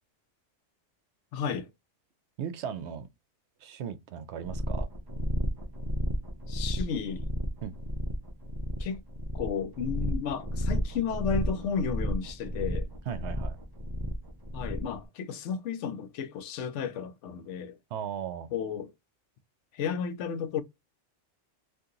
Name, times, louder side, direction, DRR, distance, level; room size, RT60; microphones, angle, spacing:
voice 1, 1.3-1.7 6.5-7.3 8.8-9.0 9.3-12.9 14.5-17.8 18.5-18.9 19.7-20.6, left 7 dB, 75° left, 0.9 m, -33 dB
voice 2, 2.4-3.1 3.6-4.9 7.6-7.7 13.1-13.6 17.9-18.5, right 8 dB, 70° right, 0.8 m, -36 dB
sound 1, 4.4-15.0, equal, 30° right, 0.4 m, -32 dB
2.8 x 2.5 x 3.6 m
omnidirectional pair, 1.3 m